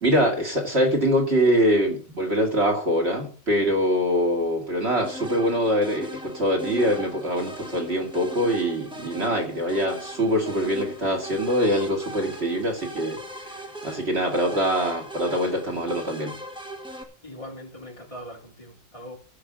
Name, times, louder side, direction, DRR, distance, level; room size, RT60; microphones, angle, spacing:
voice 1, 0.0-13.2 13.8-16.4, equal, 75° right, 2.7 m, -24 dB
sound 1, 5.0-17.0, equal, 5° right, 1.5 m, -39 dB
voice 2, 17.2-19.2, equal, 30° left, 3.8 m, -41 dB
15.0 x 5.5 x 6.3 m
omnidirectional pair, 1.1 m